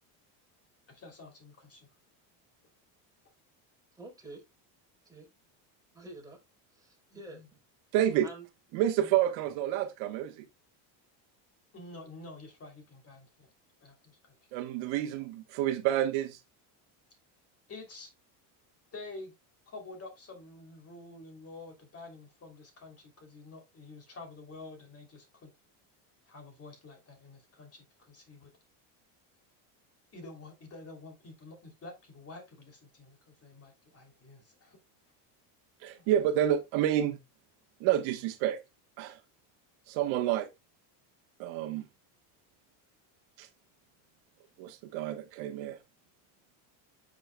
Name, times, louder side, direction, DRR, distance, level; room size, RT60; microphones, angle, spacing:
voice 1, 0.9-1.9 7.1-7.4 9.0-9.2 11.7-13.5 13.8-14.4 17.7-18.1 18.9-19.3 19.7-25.5 26.3-28.5 30.1-34.8 35.9-36.1, left 3 dB, 30° left, 3.1 m, -49 dB
voice 2, 4.0-4.4 5.0-5.3 5.9-6.4 6.7-7.6 8.2-8.5, right 2 dB, 5° right, 4.0 m, -48 dB
voice 3, 7.9-8.3 8.7-10.4 14.5-16.4 35.8-37.2 37.8-38.6 39.0-39.2 39.9-40.5 41.4-41.8 43.4-43.5 44.6-45.8, right 11 dB, 65° right, 1.2 m, -29 dB
9.7 x 6.6 x 2.3 m
cardioid pair, 130°, 50 cm